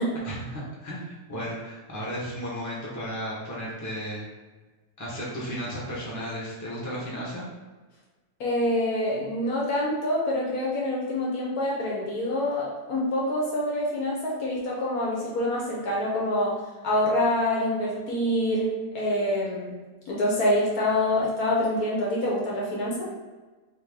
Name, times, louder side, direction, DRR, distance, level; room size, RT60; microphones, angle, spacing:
voice 1, 0.2-4.3 5.0-7.5, equal, 15° left, -6 dB, 0.9 m, -34 dB
voice 2, 8.4-16.6 16.8-19.7 20.1-23.1, left 1 dB, 65° left, -4 dB, 1.2 m, -26 dB
3.3 x 3.0 x 3.6 m, 1.3 s
omnidirectional pair, 1.8 m